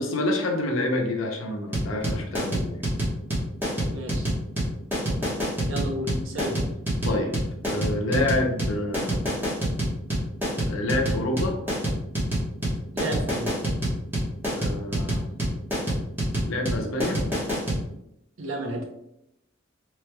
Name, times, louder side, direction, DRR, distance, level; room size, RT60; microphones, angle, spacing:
voice 1, 0.0-2.8 7.0-7.3 7.6-9.2 10.7-11.6 14.5-15.3 16.5-17.2, left 1 dB, 80° left, 3 dB, 0.6 m, -27 dB
sound 1, 1.7-17.8, right 1 dB, 10° right, 1.1 m, -26 dB
voice 2, 3.9-4.3 5.7-6.6 12.9-13.5 18.4-18.8, right 1 dB, 70° right, 1 dB, 0.7 m, -31 dB
3.1 x 3.1 x 2.2 m, 0.83 s
head